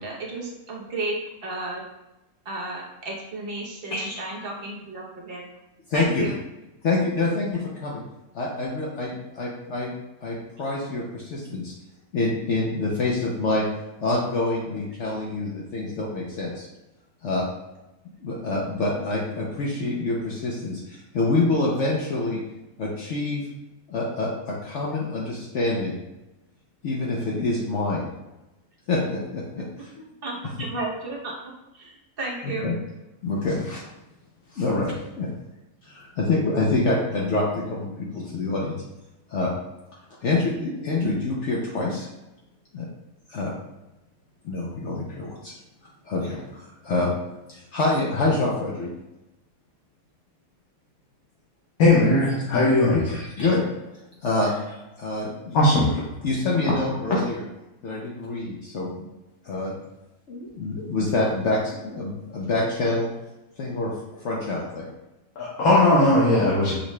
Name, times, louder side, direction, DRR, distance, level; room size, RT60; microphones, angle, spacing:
voice 1, 0.0-1.9 2.4-5.4 5.9-6.3 29.8-32.7 35.2-35.3, right 2 dB, 45° right, -2 dB, 1.0 m, -33 dB
voice 2, 3.9-4.2 5.9-6.3 6.8-8.0 8.3-9.9 10.2-11.7 12.1-13.6 14.0-16.7 17.2-17.5 18.2-22.4 22.8-23.4 23.9-25.9 26.8-28.2 28.9-29.9 32.4-32.8 33.2-33.9 34.5-35.3 35.8-38.8 39.3-39.5 40.2-42.1 42.7-42.9 43.3-43.5 44.4-45.5 46.1-47.1 47.5-48.9 52.4-52.6 52.9-53.7 54.2-57.4 57.8-59.1 59.4-59.7 60.3-63.1 63.6-63.9 64.2-64.9, left 2 dB, 60° left, -3 dB, 0.9 m, -26 dB
voice 3, 51.8-53.0 55.5-55.9 65.4-66.8, left 2 dB, 85° left, -5 dB, 1.3 m, -18 dB
6.4 x 2.3 x 3.1 m, 0.98 s
omnidirectional pair, 1.5 m